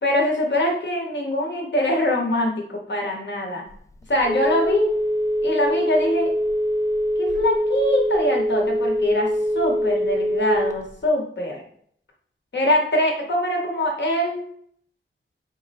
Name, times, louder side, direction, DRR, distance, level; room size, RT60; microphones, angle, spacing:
voice 1, 0.0-3.6 4.1-4.9 5.4-6.3 7.2-9.3 9.5-11.6 12.5-14.4, left 1 dB, 60° left, 0 dB, 1.1 m, -23 dB
Telephone, 3.7-11.0, equal, 15° left, 0.3 m, -23 dB
4.2 x 2.1 x 4.1 m, 0.63 s
wide cardioid pair, 110°, 21 cm